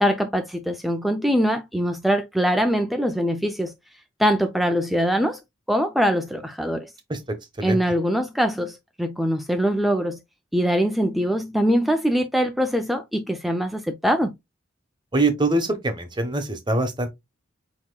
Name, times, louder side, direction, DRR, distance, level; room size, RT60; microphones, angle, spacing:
voice 1, 0.0-3.7 4.2-5.4 5.7-6.9 7.6-10.2 10.5-14.3, equal, ahead, 0.4 m, -23 dB
voice 2, 15.1-17.1, right 2 dB, 25° right, 1.0 m, -23 dB
8.2 x 2.9 x 2.2 m
head